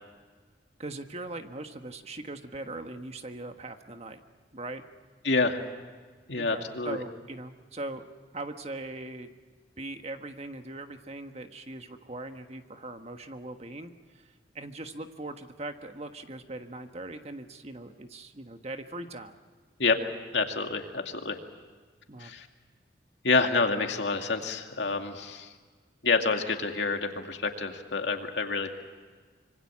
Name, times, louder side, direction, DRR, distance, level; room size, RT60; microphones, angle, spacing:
voice 1, 0.8-4.2 4.5-4.8 6.3-8.0 8.3-9.3 9.8-19.4 22.1-22.3, right 2 dB, 35° right, 7 dB, 1.4 m, -40 dB
voice 2, 5.2-5.6 6.3-7.0 19.8-20.0 20.3-21.4 22.2-22.5 23.2-25.5 26.0-28.7, left 4 dB, 90° left, 4 dB, 2.4 m, -28 dB
26.0 x 24.5 x 7.5 m, 1.5 s
head